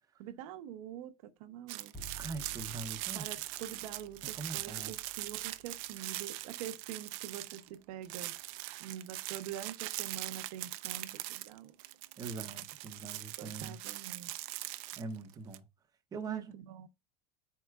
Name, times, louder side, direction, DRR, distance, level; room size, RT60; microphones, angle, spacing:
voice 1, 0.2-1.9 3.1-8.3 8.8-11.7 13.4-14.3 16.3-16.9, right 10 dB, 80° right, 0.9 m, -45 dB
sound 1, 1.7-7.7 8.0-15.6, right 18 dB, 65° right, 0.5 m, -41 dB
Bowed string instrument, 1.9-8.1, right 3 dB, 5° left, 0.9 m, -54 dB
voice 2, 2.1-3.3 4.2-4.9 12.2-13.8 15.0-15.6 16.1-16.5, right 3 dB, 20° right, 0.8 m, -42 dB
10.5 x 4.6 x 2.3 m
supercardioid pair, 140°, 19 cm